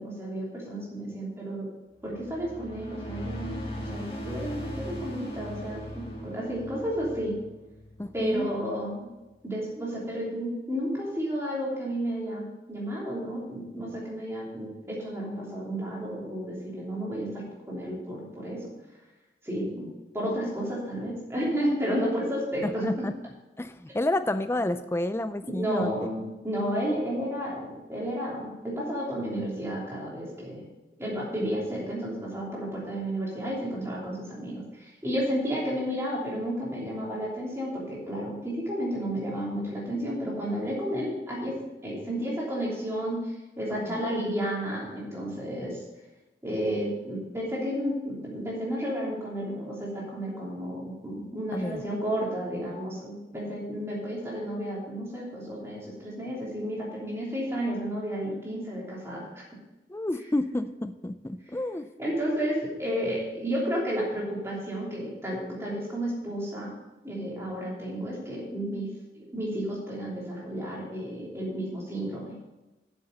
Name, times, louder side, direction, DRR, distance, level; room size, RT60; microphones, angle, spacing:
voice 1, 0.0-1.7 2.0-7.4 8.1-9.1 9.4-18.7 19.4-19.9 20.1-23.0 25.6-30.7 31.0-45.8 46.4-59.4 62.0-66.7 67.0-72.4, equal, 15° right, -5 dB, 3.0 m, -32 dB
sound 1, 2.0-8.6, equal, 30° left, 1.9 m, -39 dB
voice 2, 8.0-8.5 22.6-23.1 23.6-25.9 43.7-44.0 51.5-51.8 59.9-61.9, left 1 dB, 15° left, 11 dB, 0.3 m, -30 dB
8.1 x 6.9 x 6.5 m, 1.1 s
head